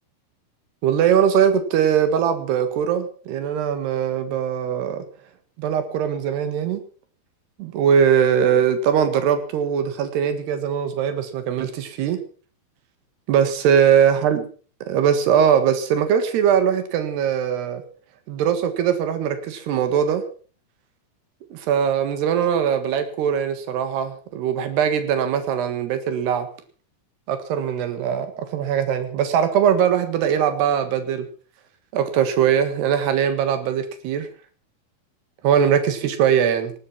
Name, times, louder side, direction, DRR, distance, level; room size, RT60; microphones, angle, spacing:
voice 1, 0.8-5.1 5.6-6.8 7.6-12.2 13.3-14.4 14.9-17.8 18.3-20.2 21.5-26.5 27.3-31.3 31.9-34.3 35.4-36.7, right 8 dB, 90° right, 9 dB, 3.8 m, -21 dB
19.5 x 11.0 x 6.0 m, 0.40 s
omnidirectional pair, 4.6 m